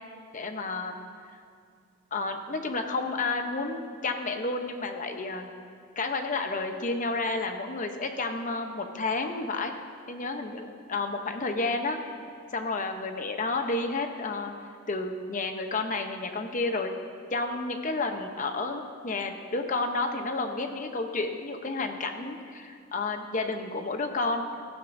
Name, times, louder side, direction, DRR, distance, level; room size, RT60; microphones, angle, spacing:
voice 1, 0.3-1.0 1.3-1.4 2.1-5.5 6.0-9.8 10.1-12.0 12.5-14.5 14.9-16.9 17.3-24.5, left 3 dB, 40° left, 5 dB, 0.8 m, -31 dB
15.0 x 14.0 x 2.7 m, 2.2 s
head